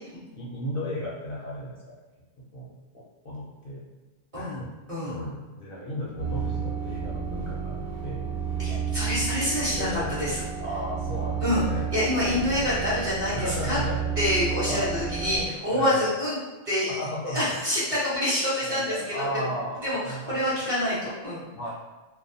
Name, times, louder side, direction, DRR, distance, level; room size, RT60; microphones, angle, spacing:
voice 1, 0.3-2.0 2.4-3.8 4.3-4.7 5.1-8.3 9.8-10.1 10.6-11.9 12.5-12.7 13.3-14.0 14.7-15.3 15.7-16.1 16.9-17.6 18.6-20.7 21.6-21.7, equal, 60° left, -5 dB, 0.7 m, -34 dB
voice 2, 4.9-5.2 8.6-10.4 11.4-11.6 11.9-13.8 14.2-16.4 16.7-17.0 17.3-19.5 19.8-21.4, left 1 dB, 35° right, -10 dB, 0.8 m, -27 dB
sound 1, 6.2-15.5, right 7 dB, 75° right, 0.9 m, -31 dB
2.3 x 2.2 x 2.6 m, 1.2 s
omnidirectional pair, 1.2 m